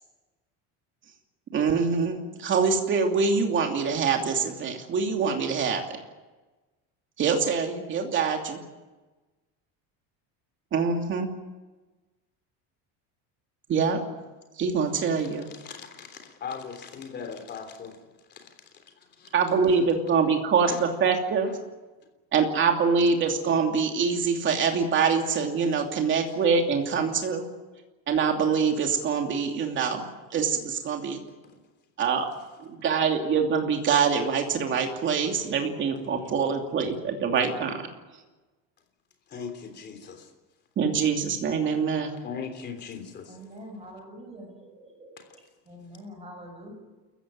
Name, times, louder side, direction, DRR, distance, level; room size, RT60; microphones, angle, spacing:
voice 1, 1.5-5.8 7.2-8.6 10.7-11.3 13.7-14.0 14.6-15.5 19.3-21.5 22.3-27.5 28.1-30.1 30.3-31.2 32.0-32.3 32.6-37.8 40.8-42.1, right 5 dB, 30° right, 3 dB, 2.8 m, -24 dB
voice 2, 15.5-18.0 18.3-19.3 20.7-20.9 21.5-21.6 26.3-26.4 31.4-31.6 35.4-35.5 35.9-36.3 39.3-40.3 42.2-43.3 45.2-45.3, left 6 dB, 30° left, 5 dB, 3.4 m, -40 dB
voice 3, 43.3-45.2 45.7-46.7, equal, 15° right, 3 dB, 5.9 m, -44 dB
28.5 x 15.0 x 9.3 m, 1.2 s
cardioid pair, 170°, 37 cm